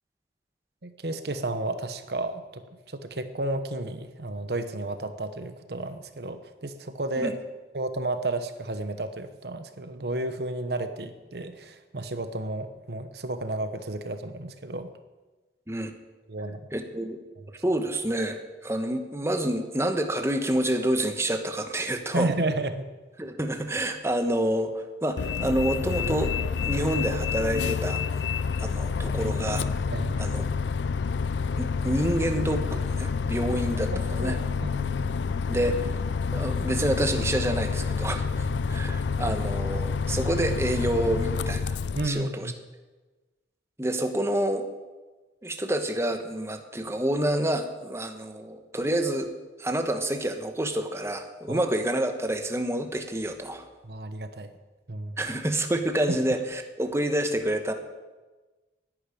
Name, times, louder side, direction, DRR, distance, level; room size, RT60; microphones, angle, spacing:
voice 1, 0.8-2.6 2.9-7.3 7.7-14.9 16.3-16.6 22.1-22.9 29.9-30.2 34.2-35.2 38.4-38.5 41.9-42.5 51.5-51.6 53.8-54.5 54.9-55.2 56.1-56.2, right 2 dB, 65° right, 10 dB, 1.0 m, -32 dB
voice 2, 16.7-17.2 17.6-22.3 23.2-26.3 26.6-28.3 28.6-29.7 30.2-30.4 31.6-33.9 34.2-34.4 35.5-35.9 36.3-41.8 42.0-42.5 43.8-44.7 45.4-49.3 49.6-53.7 55.2-57.7, right 1 dB, 15° right, 6 dB, 1.2 m, -28 dB
Bus, 25.2-42.1, left 5 dB, 85° left, 0.4 m, -28 dB
11.0 x 10.0 x 9.8 m, 1.2 s
head